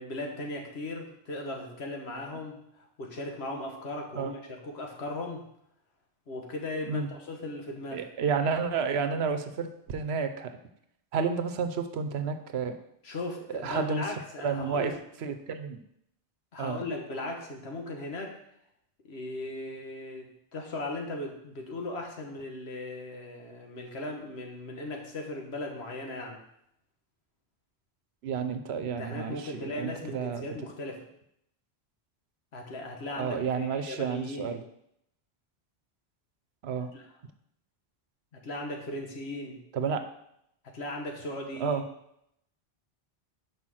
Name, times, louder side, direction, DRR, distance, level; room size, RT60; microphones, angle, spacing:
voice 1, 0.0-5.4 6.3-8.1 13.0-15.0 16.5-18.4 19.0-26.4 28.8-31.0 32.5-34.6 36.8-37.1 38.3-39.6 40.6-41.8, left 2 dB, 90° left, 2 dB, 1.5 m, -38 dB
voice 2, 7.9-10.5 11.1-12.8 13.5-14.0 14.4-14.9 15.2-15.8 16.6-16.8 28.2-30.4 33.2-34.6 36.6-36.9 39.7-40.0 41.6-41.8, right 6 dB, 85° right, 8 dB, 1.0 m, -30 dB
5.7 x 5.0 x 6.3 m, 0.75 s
omnidirectional pair, 1.1 m